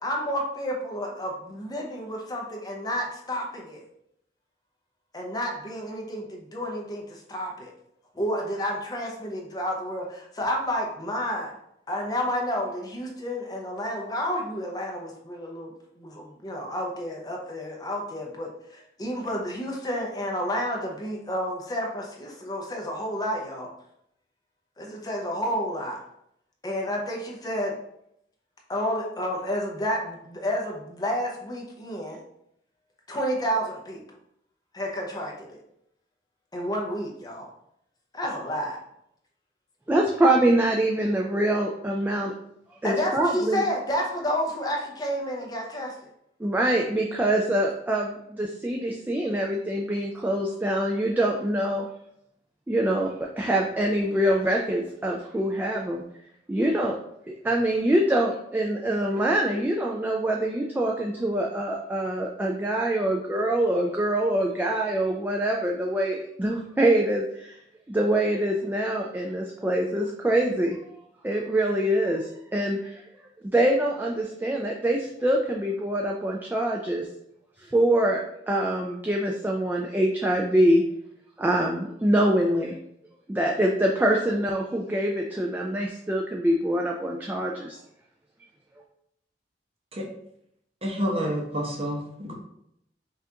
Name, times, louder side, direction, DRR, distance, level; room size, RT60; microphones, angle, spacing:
voice 1, 0.0-3.8 5.1-7.7 8.2-11.5 11.9-15.7 16.0-23.7 24.8-26.0 26.6-27.7 28.7-32.2 33.1-34.0 34.7-35.6 36.5-37.5 38.1-38.8 42.8-45.9, equal, 20° left, 0 dB, 0.7 m, -30 dB
voice 2, 39.9-42.3 42.8-43.6 46.4-51.9 52.7-56.0 56.5-57.0 57.4-67.6 67.9-70.8 71.2-73.0 73.5-77.1 77.7-80.8 81.4-82.7 83.3-87.8, right 1 dB, 10° right, -1 dB, 0.3 m, -24 dB
voice 3, 90.8-92.3, equal, 35° right, 0 dB, 0.8 m, -29 dB
5.6 x 2.5 x 2.8 m, 0.75 s
head